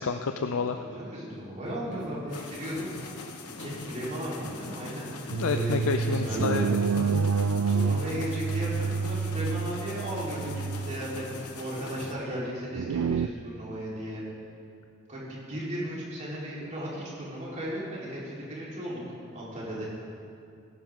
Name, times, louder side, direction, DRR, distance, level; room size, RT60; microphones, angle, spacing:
voice 1, 0.0-0.8 5.3-7.3, left 4 dB, 65° left, 7 dB, 0.5 m, -29 dB
voice 2, 0.5-5.1 5.4-6.7 7.7-14.2 15.1-19.0 19.3-19.9, equal, 35° right, -6 dB, 3.8 m, -36 dB
sound 1, 1.3-12.1, left 3 dB, 90° left, 1.2 m, -42 dB
sound 2, 5.3-11.4 12.7-13.3, right 5 dB, 80° right, 0.4 m, -28 dB
19.0 x 11.0 x 3.7 m, 2.5 s
head